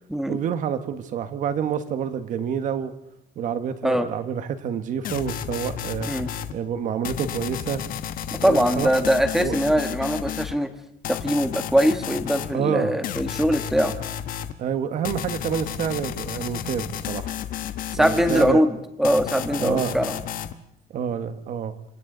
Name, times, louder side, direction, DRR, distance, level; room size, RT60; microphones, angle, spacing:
voice 1, 0.3-2.9 3.3-6.1 6.5-7.8 8.4-8.9 9.4-9.6 12.5-12.9 14.6-17.3 18.0-18.6 19.6-20.0 20.9-21.8, right 8 dB, 50° right, 10 dB, 1.5 m, -28 dB
sound 1, 5.0-6.5 7.0-10.5 11.0-12.5 13.0-14.5 15.0-18.5 19.0-20.5, left 10 dB, 60° left, 1.1 m, -32 dB
voice 2, 8.3-10.7 11.1-13.9 17.9-20.2, equal, ahead, 7 dB, 1.6 m, -22 dB
28.5 x 25.5 x 4.0 m, 0.80 s
cardioid pair, 155°, 16 cm